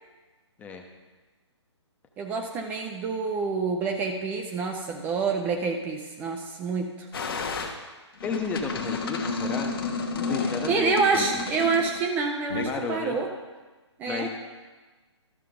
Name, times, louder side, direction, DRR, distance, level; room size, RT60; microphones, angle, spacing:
voice 1, 2.2-7.1 10.7-13.3 14.0-14.3, right 4 dB, 10° right, 3 dB, 0.5 m, -27 dB
sound 1, 7.1-7.7 8.2-12.0 12.5-12.7, left 4 dB, 50° left, 1.2 m, -31 dB
voice 2, 8.2-11.3 12.7-13.2 14.1-14.3, left 4 dB, 10° left, 3 dB, 0.8 m, -33 dB
13.0 x 6.5 x 3.7 m, 1.3 s
figure-of-eight pair, 135°, 15 cm